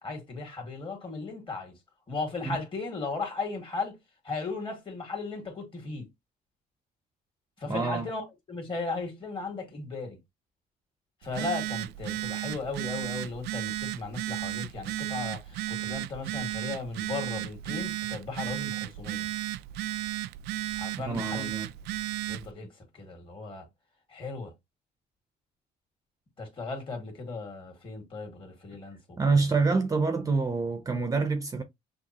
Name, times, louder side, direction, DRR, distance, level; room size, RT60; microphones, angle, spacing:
voice 1, 0.0-1.8 2.1-4.0 4.2-6.1 7.6-10.2 11.2-19.3 20.8-21.5 22.3-23.7 24.1-24.5 26.4-29.0 29.4-29.5, left 3 dB, 30° left, 2.1 m, -36 dB
voice 2, 7.7-8.1 21.0-21.7 29.2-31.6, right 4 dB, 20° right, 0.7 m, -27 dB
Telephone, 11.2-22.5, right 15 dB, 80° right, 0.4 m, -34 dB
6.3 x 2.4 x 2.9 m
cardioid pair, 110°, 17 cm